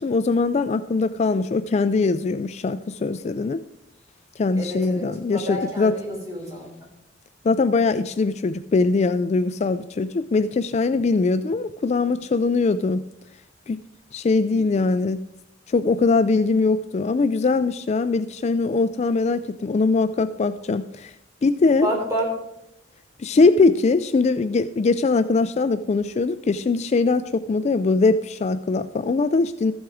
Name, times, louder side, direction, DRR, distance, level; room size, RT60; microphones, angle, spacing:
voice 1, 0.0-3.6 4.4-6.0 7.4-13.0 13.7-13.8 14.1-15.2 15.7-21.1 21.4-21.9 23.2-29.7, left 3 dB, 35° left, 12 dB, 0.3 m, -21 dB
voice 2, 4.5-6.7 21.8-22.3, equal, 15° right, -2 dB, 3.8 m, -29 dB
13.5 x 8.0 x 4.8 m, 0.81 s
head